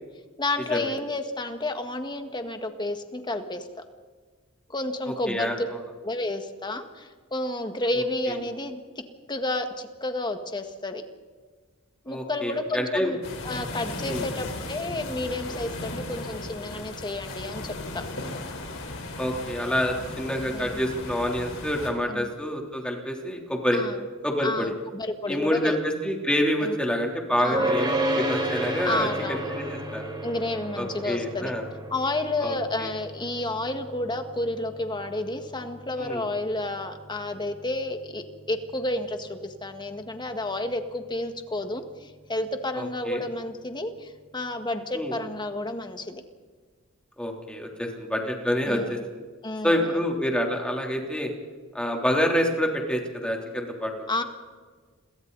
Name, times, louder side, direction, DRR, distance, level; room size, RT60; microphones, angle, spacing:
voice 1, 0.4-3.7 4.7-5.7 6.0-8.8 9.3-11.0 12.1-13.2 13.4-18.0 20.5-20.8 22.1-22.3 23.7-24.0 24.4-25.8 26.6-26.7 27.4-27.8 28.8-29.5 30.2-31.5 31.9-46.2 48.7-49.0 49.4-50.0 54.1-54.2, left 2 dB, 20° left, 6 dB, 1.8 m, -31 dB
voice 2, 5.0-5.5 8.3-8.4 12.1-13.1 14.0-14.3 19.2-23.8 24.2-24.7 25.3-30.0 30.8-31.6 32.4-32.9 36.0-36.2 42.8-43.2 44.9-45.2 47.2-49.0 49.6-51.3 51.7-54.1, equal, 5° left, 1 dB, 3.4 m, -27 dB
sound 1, 13.2-21.9, left 2 dB, 65° left, 4.5 m, -36 dB
sound 2, 27.5-38.8, right 1 dB, 20° right, 5.1 m, -32 dB
29.5 x 23.0 x 4.1 m, 1.5 s
head